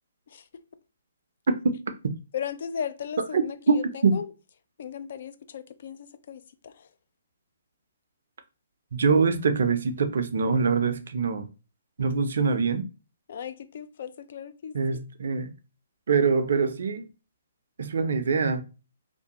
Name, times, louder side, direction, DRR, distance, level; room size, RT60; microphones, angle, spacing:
voice 1, 0.3-0.6 2.3-4.3 4.8-6.9 13.3-15.0, left 8 dB, 55° left, 0.4 m, -37 dB
voice 2, 3.7-4.1 8.9-11.5 12.0-12.8 14.7-15.5 16.1-17.1 17.8-18.6, right 5 dB, 60° right, 0.5 m, -24 dB
2.6 x 2.1 x 2.9 m
figure-of-eight pair, 130°, 0 cm